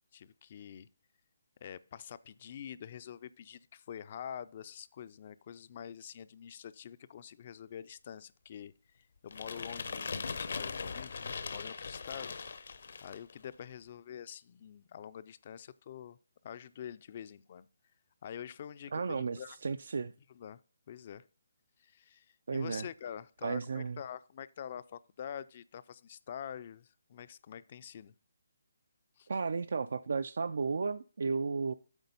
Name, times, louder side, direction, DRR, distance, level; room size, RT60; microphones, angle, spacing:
voice 1, 0.1-0.9 1.6-12.4 13.0-16.2 16.4-17.7 18.2-19.6 20.3-20.6 20.9-21.2 21.8-22.3 22.5-28.1 29.2-29.3, left 9 dB, 40° left, 0.4 m, -46 dB
sound 1, 9.3-13.3, left 5 dB, 65° left, 0.7 m, -40 dB
voice 2, 18.9-20.1 22.5-22.9 23.4-24.0 29.3-31.7, right 4 dB, 70° right, 0.3 m, -34 dB
8.1 x 4.2 x 5.4 m
hypercardioid pair, 165°, 0 cm